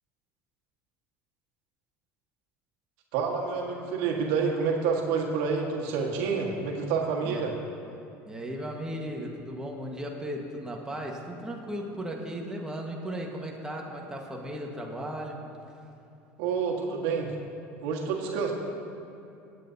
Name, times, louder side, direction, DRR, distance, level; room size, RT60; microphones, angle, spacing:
voice 1, 3.1-7.5 16.4-17.3 17.8-18.5, right 5 dB, 70° right, -1 dB, 1.7 m, -28 dB
voice 2, 8.3-15.4, equal, 10° right, 0 dB, 1.5 m, -36 dB
21.5 x 9.0 x 2.8 m, 2.7 s
supercardioid pair, 95°, 7 cm